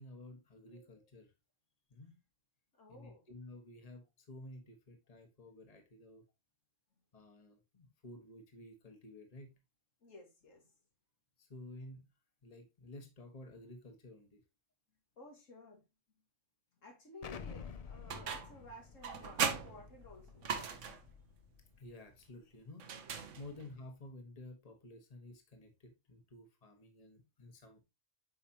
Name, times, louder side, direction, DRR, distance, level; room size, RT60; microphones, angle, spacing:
voice 1, 0.0-1.3 1.9-2.1 2.9-6.2 7.1-9.6 11.4-12.1 12.4-14.4 21.8-22.8 23.4-27.8, left 1 dB, 30° left, 1.4 m, -53 dB
voice 2, 2.8-3.2 10.0-10.7 15.2-15.8 16.8-20.8 23.3-23.7, left 2 dB, 90° left, 2.4 m, -55 dB
Explosion, 17.2-21.9, left 6 dB, 55° left, 0.4 m, -51 dB
sound 1, 18.1-18.6 19.0-21.1 22.8-23.7, right 6 dB, 75° right, 1.3 m, -38 dB
7.8 x 5.1 x 2.9 m
omnidirectional pair, 1.3 m